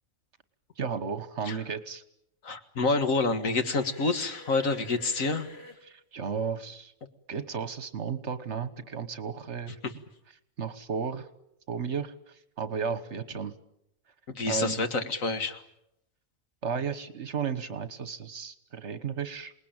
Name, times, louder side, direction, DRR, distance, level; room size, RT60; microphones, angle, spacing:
voice 1, 0.8-2.0 5.8-6.9 7.3-9.8 10.6-11.3 11.7-13.6 14.5-14.8 16.6-19.5, right 6 dB, 60° right, 13 dB, 1.6 m, -34 dB
voice 2, 2.4-5.5 9.8-9.9 14.3-15.6, left 3 dB, 90° left, 8 dB, 2.1 m, -28 dB
sound 1, 3.5-5.8, left 2 dB, 50° left, 3.8 m, -49 dB
27.5 x 20.0 x 8.9 m, 0.80 s
omnidirectional pair, 1.4 m